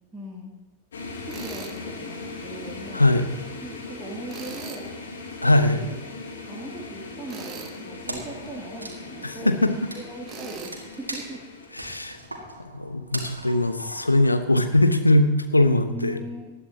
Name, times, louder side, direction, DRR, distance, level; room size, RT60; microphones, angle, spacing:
voice 1, 0.1-0.6 1.2-4.9 5.4-5.9 6.5-11.5 11.7-11.9 15.9-16.5, right 2 dB, 10° right, -5 dB, 2.7 m, -39 dB
sound 1, 0.9-12.2, left 3 dB, 65° left, 3.1 m, -39 dB
Tools, 1.3-1.8 4.3-4.9 7.3-7.8 10.3-10.7, right 6 dB, 30° right, 1.7 m, -40 dB
voice 2, 2.9-3.3 5.4-5.8 9.2-9.7 11.8-12.2 12.7-16.2, left 1 dB, 85° left, 8 dB, 1.2 m, -20 dB
Wood, 8.1-14.8, right 1 dB, 80° right, 2.1 m, -40 dB
19.5 x 13.0 x 2.9 m, 1.1 s
figure-of-eight pair, 90°, 0 cm